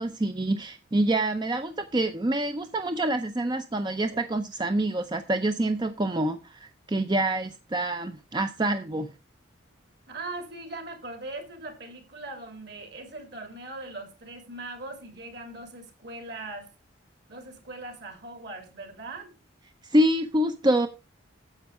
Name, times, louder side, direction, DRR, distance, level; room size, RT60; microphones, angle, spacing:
voice 1, 0.0-9.1 19.8-20.9, right 1 dB, 20° right, 0.5 m, -26 dB
voice 2, 10.1-16.7 17.3-19.3, right 2 dB, 55° right, 2.9 m, -40 dB
10.0 x 7.9 x 4.7 m
head